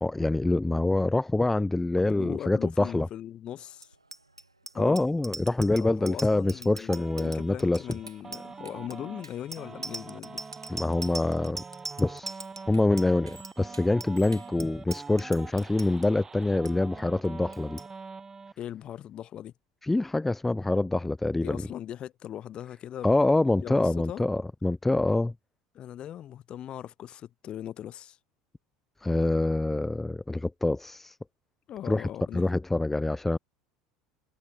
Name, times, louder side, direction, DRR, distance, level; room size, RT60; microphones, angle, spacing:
voice 1, 0.0-3.1 4.7-7.9 10.7-11.6 12.0-17.8 19.8-21.6 23.0-25.3 29.0-31.2 31.8-33.4, left 2 dB, 10° left, 0.5 m, -26 dB
voice 2, 2.0-4.0 4.7-5.0 5.8-10.4 18.6-19.5 21.4-23.1 23.5-24.2 25.7-28.2 31.7-32.5, left 11 dB, 40° left, 2.2 m, -39 dB
Bicycle bell, 3.8-16.1 16.4-16.7 17.0-17.3 17.5-17.9, right 2 dB, 85° right, 2.1 m, -41 dB
sound 1, 6.9-18.5, right 4 dB, 20° right, 6.1 m, -45 dB
figure-of-eight pair, 70°, 3 cm